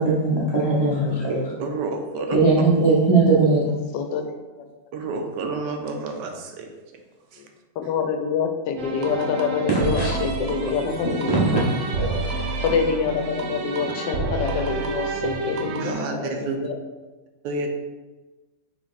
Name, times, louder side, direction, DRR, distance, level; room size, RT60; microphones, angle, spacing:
voice 1, 0.0-1.5 2.3-3.6 9.7-10.1 11.3-11.6, right 3 dB, 35° right, -6 dB, 0.4 m, -19 dB
voice 2, 1.6-2.4 4.9-6.7 15.8-16.6 17.4-17.7, right 3 dB, 80° right, 4 dB, 1.2 m, -29 dB
voice 3, 3.6-4.3 7.8-11.4 12.6-16.8, left 5 dB, 85° left, 5 dB, 1.2 m, -26 dB
sound 1, 8.8-15.9, right 3 dB, 65° right, 0.8 m, -29 dB
4.2 x 3.1 x 3.9 m, 1.2 s
omnidirectional pair, 1.9 m